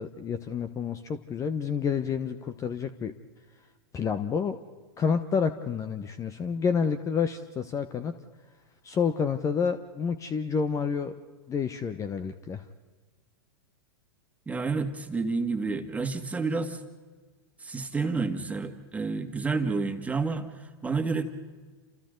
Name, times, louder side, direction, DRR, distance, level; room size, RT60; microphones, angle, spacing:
voice 1, 0.0-3.1 3.9-4.6 5.0-8.1 8.8-11.1 11.5-12.6, left 6 dB, 25° left, 11 dB, 1.1 m, -29 dB
voice 2, 14.5-16.8 17.6-20.5 20.8-21.2, right 4 dB, 10° right, 6 dB, 2.1 m, -29 dB
29.0 x 28.0 x 4.0 m, 1.4 s
hypercardioid pair, 105°, 13 cm